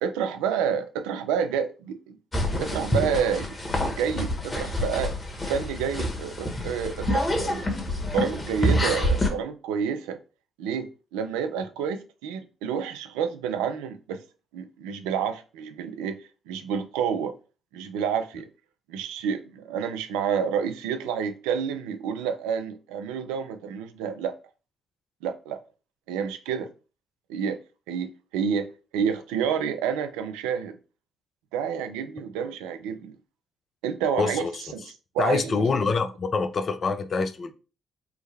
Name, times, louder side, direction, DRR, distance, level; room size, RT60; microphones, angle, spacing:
voice 1, 0.0-2.2 2.5-5.1 5.4-7.7 8.1-10.2 10.6-14.2 14.5-16.2 16.5-17.3 17.7-18.5 18.9-24.4 25.2-25.6 26.1-26.7 27.3-27.6 27.9-30.8 31.5-33.2 33.8-34.5 34.7-34.8 35.1-35.7, right 7 dB, 80° right, 0.3 m, -29 dB
sound 1, 2.3-9.3, left 1 dB, 30° left, 1.2 m, -27 dB
voice 2, 34.2-34.6 35.2-37.5, left 4 dB, 50° left, 0.5 m, -25 dB
3.4 x 2.1 x 3.3 m
hypercardioid pair, 45°, 0 cm